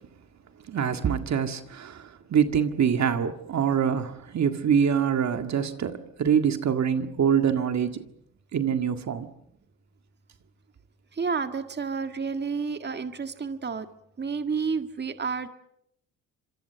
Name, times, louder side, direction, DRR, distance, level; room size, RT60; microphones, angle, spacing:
voice 1, 0.7-8.0 8.5-9.3, right 7 dB, 50° right, 8 dB, 1.9 m, -25 dB
voice 2, 11.1-13.9 14.2-15.5, right 5 dB, 30° right, 8 dB, 1.8 m, -30 dB
26.5 x 23.0 x 6.9 m, 0.77 s
supercardioid pair, 70°, 35 cm